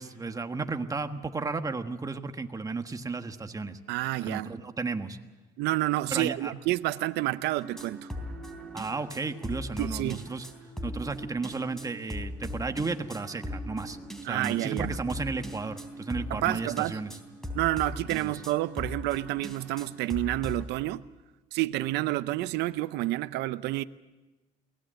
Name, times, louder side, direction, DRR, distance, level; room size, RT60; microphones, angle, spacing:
voice 1, 0.0-3.8 4.2-5.2 6.1-6.5 8.7-10.4 10.8-14.0 14.3-17.1 18.1-18.4, right 4 dB, 20° right, 1.4 m, -33 dB
voice 2, 3.9-4.5 5.6-8.1 9.8-10.2 14.3-15.0 16.3-17.0 17.5-21.0 21.5-23.8, right 17 dB, 85° right, 0.7 m, -29 dB
sound 1, 7.6-20.6, left 1 dB, 5° left, 3.4 m, -39 dB
23.0 x 18.5 x 7.7 m
cardioid pair, 110°, 17 cm